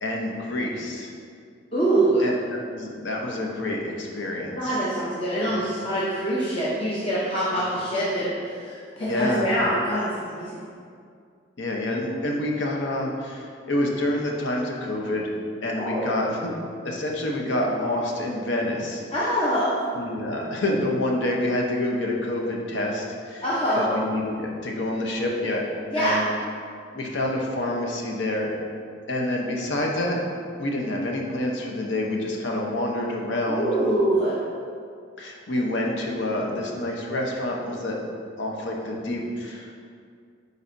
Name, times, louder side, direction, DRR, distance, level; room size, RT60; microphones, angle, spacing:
voice 1, 0.0-1.1 2.2-2.4 2.7-4.8 5.4-5.5 9.1-9.5 11.6-15.3 15.6-16.5 16.8-19.0 19.9-23.4 23.8-25.6 26.0-26.3 26.9-28.5 29.1-30.2 30.6-33.7 35.2-38.0 38.4-39.8, left 1 dB, 65° left, -1 dB, 0.9 m, -27 dB
voice 2, 1.7-2.3 4.5-10.7 15.8-16.1 19.1-19.8 23.4-24.0 25.9-26.2 33.5-34.4, right 1 dB, 30° left, -8 dB, 0.8 m, -24 dB
9.4 x 4.1 x 2.7 m, 2.3 s
head